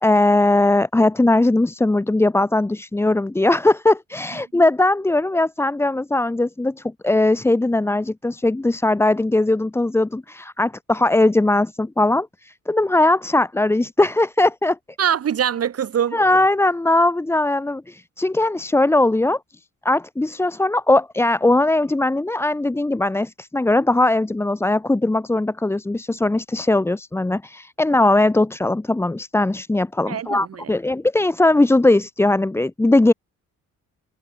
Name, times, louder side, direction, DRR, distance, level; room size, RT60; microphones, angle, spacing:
voice 1, 0.0-14.8 16.1-19.4 19.8-33.1, left 2 dB, 10° left, 0.6 m, -19 dB
voice 2, 15.0-16.2 30.1-30.7, right 9 dB, 50° right, 2.0 m, -23 dB
cardioid pair, 90°, 30 cm